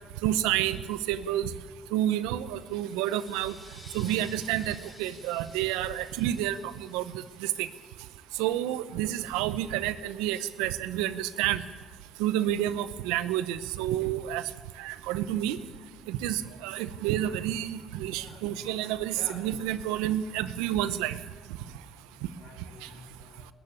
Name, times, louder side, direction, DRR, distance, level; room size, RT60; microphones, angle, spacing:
voice 1, 0.2-1.5 1.9-3.5 3.9-6.6 6.9-7.0 7.4-7.7 8.4-11.6 12.2-14.4 14.8-15.6 16.1-21.2, right 12 dB, 85° right, 15 dB, 0.8 m, -29 dB
sound 1, 2.3-8.5, left 2 dB, 20° left, 3.8 m, -54 dB
voice 2, 18.2-18.6 18.9-19.5 22.4-23.5, left 4 dB, 55° left, 6 dB, 4.2 m, -49 dB
20.0 x 13.5 x 9.7 m, 1.5 s
supercardioid pair, 70°, 0 cm